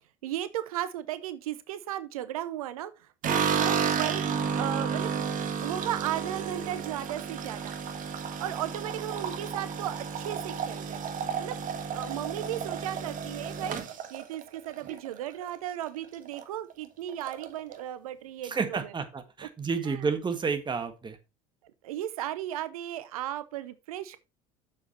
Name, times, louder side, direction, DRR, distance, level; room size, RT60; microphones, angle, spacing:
voice 1, 0.2-7.7 8.4-11.0 11.4-11.6 11.9-19.0 19.4-19.5 19.8-20.1 21.8-24.2, right 12 dB, 80° right, 0.7 m, -36 dB
sound 1, 3.2-15.5 15.8-16.4 16.7-16.8 17.1-17.8, right 6 dB, 45° right, 1.6 m, -32 dB
voice 2, 18.4-21.2, right 5 dB, 25° right, 1.6 m, -30 dB
7.1 x 6.7 x 4.3 m
hypercardioid pair, 70°, 18 cm